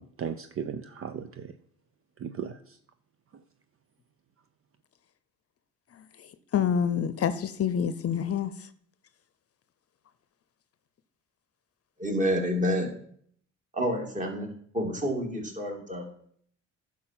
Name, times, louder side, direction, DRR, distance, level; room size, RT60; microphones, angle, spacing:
voice 1, 0.0-1.5 2.2-2.8, right 7 dB, 45° right, 0.7 m, -36 dB
voice 2, 5.9-8.7, left 8 dB, 50° left, 0.7 m, -28 dB
voice 3, 12.0-12.9 13.7-16.1, equal, 25° right, 2.8 m, -29 dB
10.5 x 6.1 x 6.0 m
cardioid pair, 90°, 30 cm